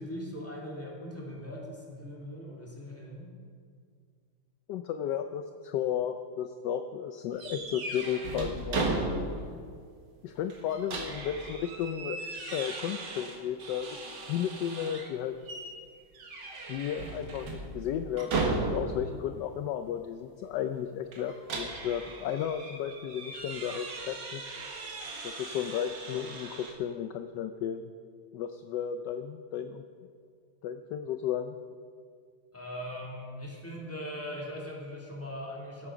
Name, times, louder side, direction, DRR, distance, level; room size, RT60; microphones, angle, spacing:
voice 1, 0.0-3.3 32.5-35.9, equal, 5° left, -3 dB, 2.6 m, -40 dB
voice 2, 4.7-8.9 10.2-12.2 12.5-13.9 14.3-15.4 16.7-24.4 25.2-27.9 28.3-29.8 30.6-31.6, left 9 dB, 75° left, 8 dB, 1.1 m, -34 dB
sound 1, 7.4-9.5 9.9-10.0 10.5-15.1 15.5-15.8 16.1-19.1 21.1-26.7, right 3 dB, 65° right, 2.1 m, -36 dB
16.5 x 8.8 x 6.0 m, 2.2 s
omnidirectional pair, 2.1 m